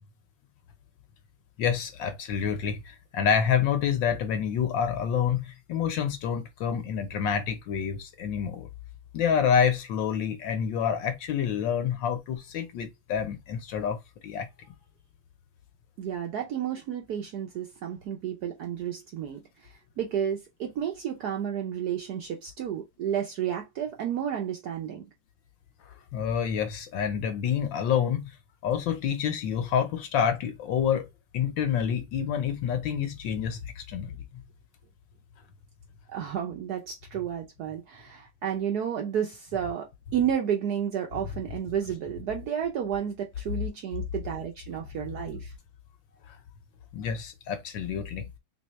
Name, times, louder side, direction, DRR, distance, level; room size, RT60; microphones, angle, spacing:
voice 1, 1.6-8.7 9.1-14.7 26.1-28.3 28.6-31.1 31.3-34.4 46.3-46.4 46.9-48.3, left 8 dB, 70° left, 1.4 m, -28 dB
voice 2, 16.0-25.0 36.1-45.5, right 9 dB, 70° right, 1.0 m, -31 dB
3.4 x 3.2 x 3.0 m
omnidirectional pair, 2.3 m